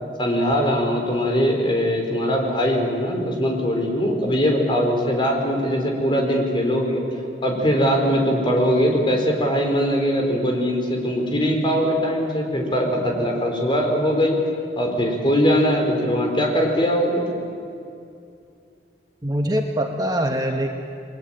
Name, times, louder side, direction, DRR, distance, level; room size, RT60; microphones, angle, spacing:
voice 1, 0.2-7.0 7.4-14.4 14.8-17.3, equal, 30° left, 2 dB, 4.7 m, -21 dB
voice 2, 19.2-20.7, right 1 dB, 20° right, 3 dB, 1.6 m, -23 dB
29.0 x 21.5 x 9.2 m, 2.5 s
head